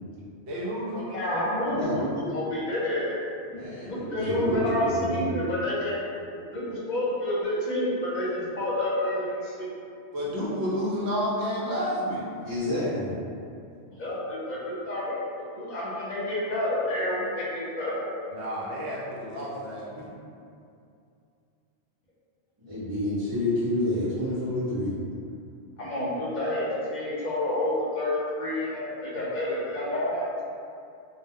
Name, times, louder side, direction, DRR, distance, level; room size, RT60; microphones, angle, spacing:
voice 1, 0.5-1.1 4.2-4.6 10.1-12.3 18.3-20.1, equal, 70° right, -5 dB, 0.9 m, -30 dB
voice 2, 1.1-3.2 3.9-5.9 6.5-9.8 13.9-18.0 25.8-30.3, left 1 dB, 45° left, -7 dB, 0.8 m, -29 dB
voice 3, 1.7-2.0 3.5-4.6 4.9-5.4 12.4-13.1 22.7-24.9, left 1 dB, 30° right, -16 dB, 0.8 m, -29 dB
2.3 x 2.2 x 3.5 m, 2.5 s
omnidirectional pair, 1.2 m